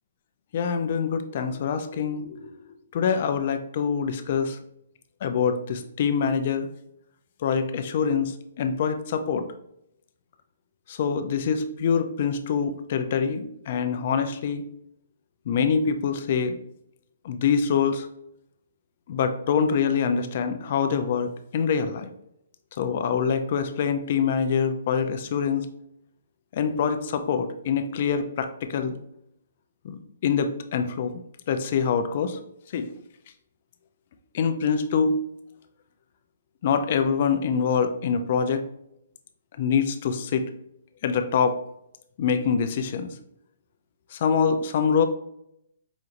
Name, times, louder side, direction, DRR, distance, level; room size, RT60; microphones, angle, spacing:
voice 1, 0.5-2.5 2.9-4.6 5.2-6.7 7.4-9.5 10.9-14.6 15.5-16.6 17.2-18.1 19.1-22.1 22.8-25.7 26.5-29.0 29.8-31.1 31.5-32.4 32.7-32.9 34.3-35.2 36.6-38.6 39.6-40.4 41.0-41.6 42.2-43.1 44.1-45.0, left 6 dB, 35° left, 8 dB, 0.4 m, -25 dB
4.9 x 2.9 x 2.5 m, 0.76 s
hypercardioid pair, 175°, 0 cm